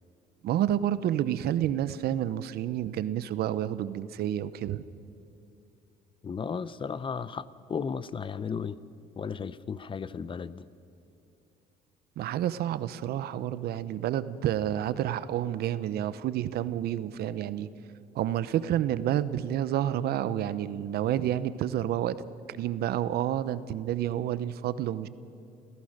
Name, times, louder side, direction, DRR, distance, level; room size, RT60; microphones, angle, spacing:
voice 1, 0.4-4.8 12.2-17.7 18.1-22.2 22.5-25.1, right 11 dB, 70° right, 15 dB, 0.8 m, -29 dB
voice 2, 6.2-8.8 9.2-10.7, left 6 dB, 30° left, 17 dB, 0.6 m, -35 dB
29.0 x 15.5 x 6.6 m, 2.7 s
cardioid pair, 110°, 17 cm